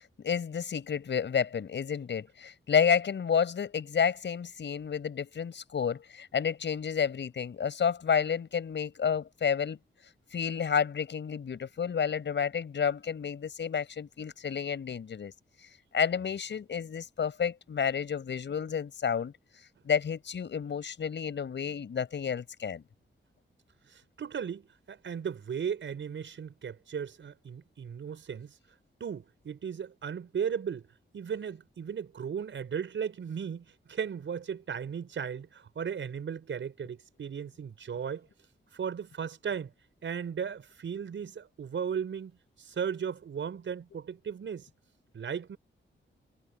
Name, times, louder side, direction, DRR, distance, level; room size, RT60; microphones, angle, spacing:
voice 1, 0.2-9.8 10.3-15.3 15.9-19.3 19.8-22.8, left 7 dB, 70° left, 6.4 m, -30 dB
voice 2, 23.9-28.5 29.0-30.9 31.1-38.3 38.7-39.7 40.0-42.3 42.6-44.7 45.1-45.6, right 7 dB, 80° right, 5.8 m, -36 dB
wide cardioid pair, 175°, 20 cm